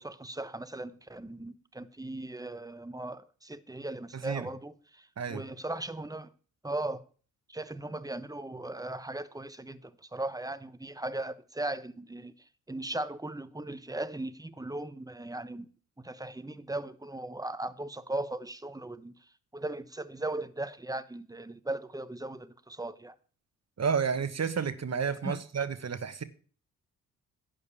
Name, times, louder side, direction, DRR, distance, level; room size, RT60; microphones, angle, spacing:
voice 1, 0.0-6.3 6.6-7.0 7.5-12.3 12.7-15.7 16.0-19.1 19.5-23.1 25.2-25.4, right 2 dB, 10° right, 1.0 m, -38 dB
voice 2, 23.8-26.2, right 6 dB, 45° right, 1.3 m, -31 dB
11.0 x 5.3 x 8.4 m
supercardioid pair, 55°, 36 cm